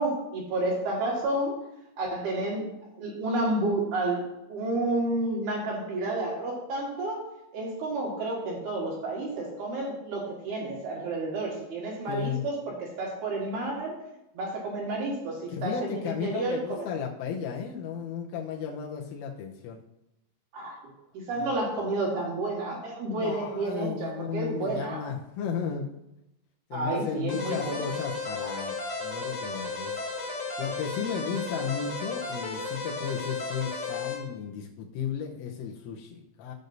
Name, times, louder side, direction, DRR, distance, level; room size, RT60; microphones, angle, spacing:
voice 1, 0.0-1.7 2.0-2.7 3.0-4.2 4.5-7.2 7.5-14.0 14.3-16.8 20.5-25.0 26.7-27.8, right 2 dB, 60° right, -4 dB, 3.4 m, -30 dB
voice 2, 12.1-12.4 15.5-19.8 21.4-21.5 23.1-26.0 26.7-29.9 30.6-36.5, left 7 dB, 85° left, 0 dB, 3.4 m, -34 dB
sound 1, 27.3-34.1, left 3 dB, 45° left, 2.8 m, -34 dB
15.0 x 6.5 x 2.7 m, 0.89 s
omnidirectional pair, 5.6 m